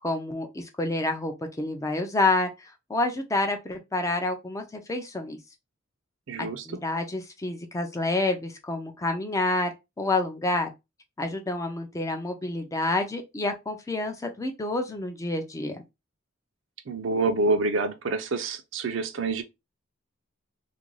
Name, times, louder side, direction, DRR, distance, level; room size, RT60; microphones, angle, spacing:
voice 1, 0.0-5.4 6.4-10.7 11.2-15.8, left 2 dB, 15° left, 0.4 m, -28 dB
voice 2, 6.3-6.8 16.9-19.4, right 3 dB, 65° right, 0.5 m, -27 dB
2.5 x 2.2 x 3.0 m
head